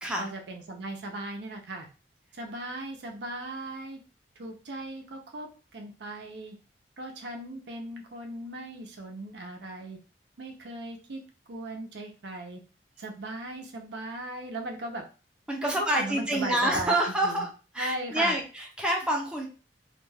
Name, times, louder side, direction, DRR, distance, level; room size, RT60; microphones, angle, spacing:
voice 1, 0.2-1.9 2.3-4.0 4.4-6.6 7.0-10.0 10.4-11.2 11.5-12.6 13.0-15.0 15.6-17.5 17.8-18.4, right 1 dB, 80° right, 3 dB, 0.6 m, -37 dB
voice 2, 15.5-17.5 17.7-19.5, right 1 dB, 5° right, 0 dB, 0.5 m, -27 dB
2.3 x 2.2 x 3.2 m, 0.34 s
head